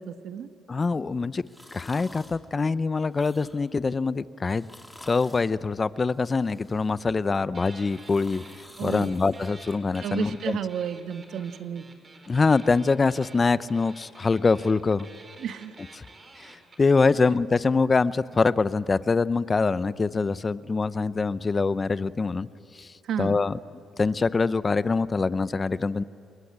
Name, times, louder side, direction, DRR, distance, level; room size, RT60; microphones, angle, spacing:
voice 1, 0.0-0.5 8.8-9.1 10.0-11.8 15.4-15.7 23.0-23.4, right 8 dB, 75° right, 9 dB, 1.4 m, -32 dB
voice 2, 0.7-1.4 1.7-4.7 5.0-8.4 8.8-10.6 12.3-15.1 16.4-22.5 22.8-22.9 23.2-23.6 24.0-26.0, left 4 dB, 30° left, 15 dB, 0.8 m, -24 dB
sound 1, 1.4-2.4 3.0-3.8 4.5-5.5 6.1-7.1 7.6-10.0 10.4-10.5, left 1 dB, 5° left, 2.8 m, -50 dB
sound 2, 7.5-8.6 8.9-17.1, right 3 dB, 30° right, 4.3 m, -49 dB
28.0 x 22.0 x 8.8 m, 2.7 s
cardioid pair, 90°, 0 cm